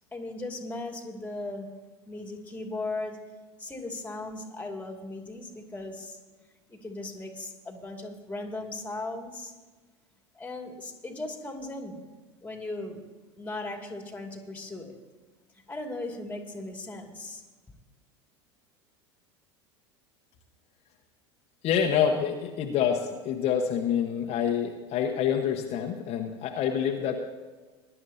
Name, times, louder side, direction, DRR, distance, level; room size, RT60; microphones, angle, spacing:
voice 1, 0.1-1.7 2.1-3.2 3.6-6.2 6.7-9.6 10.3-12.0 12.4-13.0 13.4-14.9 15.7-17.4, left 2 dB, 10° left, 2 dB, 2.4 m, -37 dB
voice 2, 21.6-27.2, left 8 dB, 45° left, 2 dB, 1.1 m, -27 dB
20.5 x 11.0 x 2.8 m, 1.3 s
hypercardioid pair, 80°, 15 cm